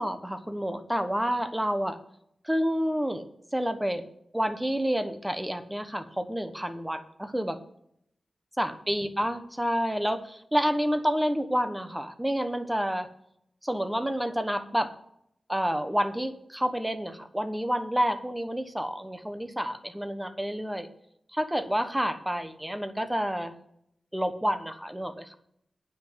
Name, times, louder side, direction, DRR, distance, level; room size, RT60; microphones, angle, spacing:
voice 1, 0.0-2.0 2.4-3.2 3.5-4.0 4.3-7.6 8.6-13.1 13.6-14.9 15.5-20.9 21.3-23.5 24.1-25.4, equal, 5° right, 8 dB, 1.1 m, -29 dB
9.5 x 6.0 x 7.8 m, 0.73 s
wide cardioid pair, 95°, 0 cm